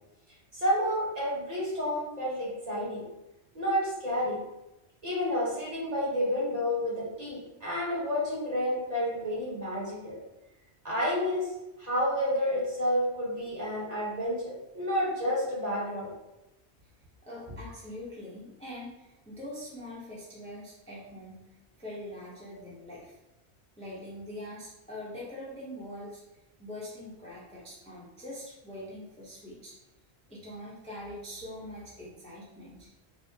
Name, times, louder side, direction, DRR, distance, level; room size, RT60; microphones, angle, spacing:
voice 1, 0.5-3.0 3.5-4.4 5.0-10.2 10.8-11.5 11.8-16.1, equal, 35° right, -7 dB, 1.2 m, -30 dB
voice 2, 17.2-21.4 21.8-23.2 23.8-29.7 30.3-32.9, left 1 dB, 5° left, -7 dB, 0.7 m, -43 dB
4.7 x 2.1 x 2.8 m, 0.97 s
omnidirectional pair, 1.1 m